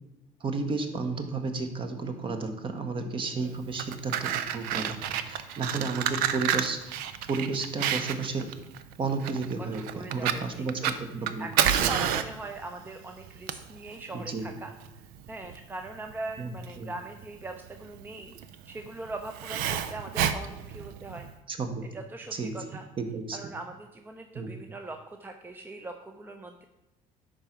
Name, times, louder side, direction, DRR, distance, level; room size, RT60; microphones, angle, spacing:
voice 1, 0.4-7.0 7.3-8.5 9.0-10.8 11.1-11.5 11.8-12.0 14.1-14.5 16.4-16.9 21.5-21.9 22.3-22.5 23.0-23.5 24.3-24.5, right 4 dB, 35° right, 6 dB, 1.1 m, -32 dB
Fire, 3.6-21.3, right 9 dB, 85° right, 0.6 m, -31 dB
voice 2, 9.6-10.9 11.4-14.7 15.3-18.3 18.7-21.3 21.9-22.9 23.3-26.6, right 2 dB, 15° right, 5 dB, 0.6 m, -41 dB
10.5 x 3.9 x 5.9 m, 0.93 s
cardioid pair, 120°, 15 cm